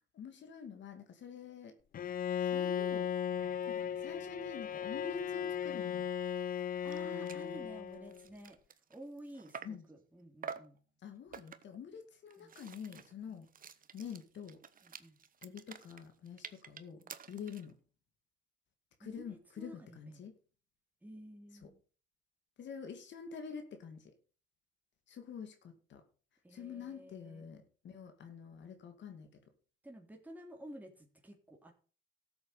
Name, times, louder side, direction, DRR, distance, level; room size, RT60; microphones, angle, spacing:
voice 1, 0.1-1.8 2.4-3.1 3.7-6.1 7.0-7.6 9.6-9.8 11.0-13.5 13.9-14.6 15.4-17.0 17.3-17.7 19.0-20.3 22.6-24.1 25.1-26.0 26.5-29.4, left 6 dB, 65° left, 6 dB, 2.5 m, -47 dB
Bowed string instrument, 1.9-8.2, left 9 dB, 45° left, 0.5 m, -36 dB
sound 1, 6.6-6.7 6.9-7.0 7.3-7.5 7.9-9.9 10.4-10.8 11.3-11.8 12.3-17.7, right 6 dB, 45° right, 1.2 m, -49 dB
voice 2, 6.8-10.8 12.4-12.6 13.3-13.4 14.8-15.2 16.9-17.1 19.0-20.3 21.0-21.8 26.4-27.5 29.8-31.7, right 1 dB, 10° right, 1 dB, 3.3 m, -52 dB
13.0 x 8.0 x 5.7 m, 0.38 s
cardioid pair, 90°, 20 cm